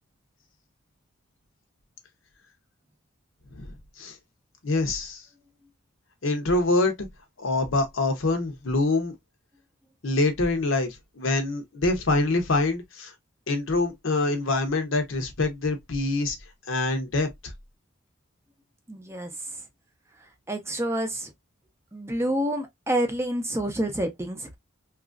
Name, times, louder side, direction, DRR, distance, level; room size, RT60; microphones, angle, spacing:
voice 1, 4.6-5.2 6.2-7.1 7.4-9.1 10.0-13.1 13.5-16.4 16.7-17.3, left 2 dB, 70° left, 0.7 m, -25 dB
voice 2, 18.9-19.6 20.2-21.3 21.9-24.6, right 1 dB, 15° right, 0.5 m, -28 dB
2.9 x 2.4 x 2.3 m
head